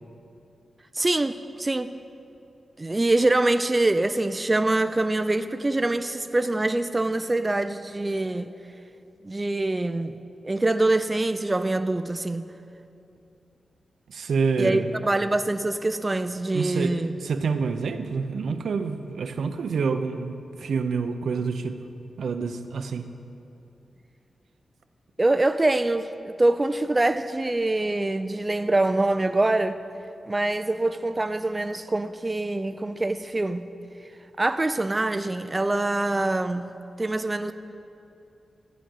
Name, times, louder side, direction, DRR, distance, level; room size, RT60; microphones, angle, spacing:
voice 1, 0.9-1.9 2.8-8.5 9.2-10.2 10.4-12.5 14.6-17.1 25.2-29.8 30.3-33.7 34.4-37.5, right 2 dB, 20° right, 0.4 m, -24 dB
voice 2, 14.1-15.0 16.5-21.8 22.2-23.1, right 5 dB, 80° right, 0.6 m, -27 dB
14.0 x 5.0 x 9.2 m
wide cardioid pair, 90°, 0 cm